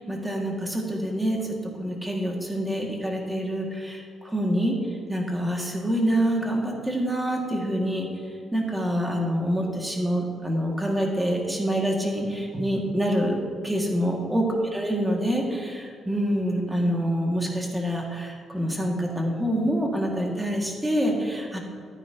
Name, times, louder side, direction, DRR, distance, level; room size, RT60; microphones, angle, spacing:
voice 1, 0.1-4.8 5.1-8.1 8.5-13.4 13.6-14.5 14.7-21.6, equal, 10° right, -1 dB, 2.2 m, -26 dB
13.5 x 9.5 x 3.0 m, 2.2 s
cardioid pair, 90°, 0 cm